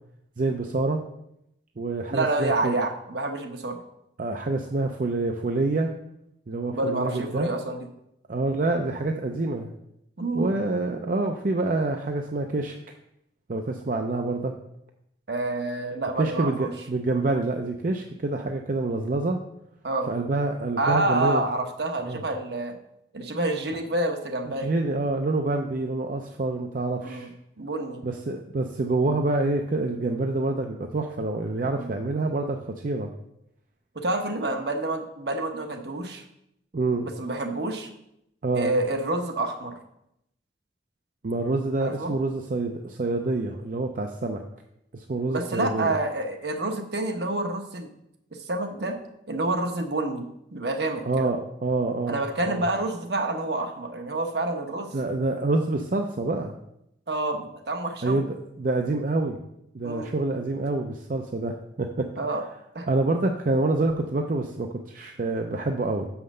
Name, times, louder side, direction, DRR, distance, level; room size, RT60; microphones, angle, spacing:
voice 1, 0.4-1.0 1.8-2.8 4.2-5.9 6.5-7.5 8.3-9.7 10.3-12.8 13.5-14.6 16.2-19.4 20.1-21.5 22.0-22.2 24.6-27.3 28.0-33.1 36.7-37.1 38.4-38.8 41.2-44.4 44.9-46.0 51.0-52.7 54.9-56.5 58.0-59.4 59.7-62.1 62.9-66.1, right 2 dB, 45° right, 4 dB, 0.5 m, -27 dB
voice 2, 2.1-3.8 6.7-7.9 10.2-10.6 15.3-16.7 19.8-20.1 20.8-22.7 23.1-24.7 27.0-27.3 27.6-28.0 31.6-31.9 33.9-36.2 37.2-37.9 38.5-39.7 41.8-42.1 45.3-47.9 48.5-49.0 49.3-50.2 50.5-51.3 52.1-54.9 57.1-58.2 59.8-60.1 62.2-62.4 62.7-62.9, right 2 dB, 65° right, 5 dB, 1.0 m, -28 dB
6.3 x 5.8 x 6.6 m, 0.80 s
head